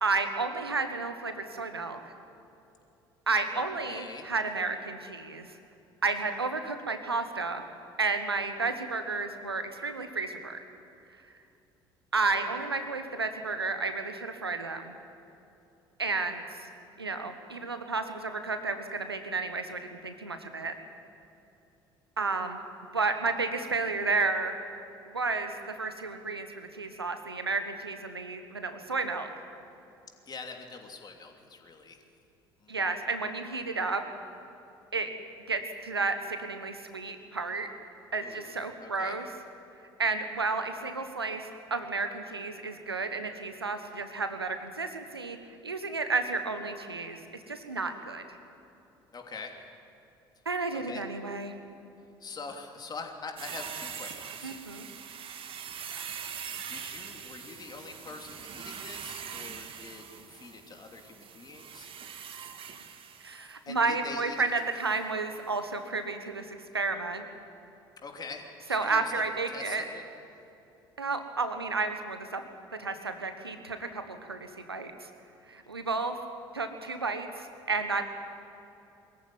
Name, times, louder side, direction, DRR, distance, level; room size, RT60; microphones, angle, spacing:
voice 1, 0.0-2.1 3.3-5.5 6.0-7.6 8.0-10.6 12.1-14.9 16.0-16.6 17.0-20.7 22.2-22.6 22.9-24.6 25.1-29.3 32.7-34.0 34.9-35.1 35.5-37.7 38.1-39.3 40.0-45.4 45.6-47.2 47.5-48.2 50.4-51.5 54.4-54.9 63.2-67.2 68.7-69.8 71.0-72.4 72.8-75.1 75.5-76.2 76.5-78.0, right 3 dB, 90° right, 8 dB, 1.2 m, -32 dB
voice 2, 3.5-4.3 30.3-32.0 32.6-32.8 38.2-38.5 38.8-39.2 49.1-49.6 50.7-51.0 52.2-54.6 56.7-61.9 62.7-62.8 63.7-64.5 68.0-70.0, left 4 dB, 35° left, 3 dB, 3.0 m, -44 dB
sound 1, 53.4-63.5 64.8-65.0 65.3-65.4, right 7 dB, 45° right, 1.6 m, -42 dB
22.5 x 14.0 x 9.2 m, 2.8 s
figure-of-eight pair, 60°, 13 cm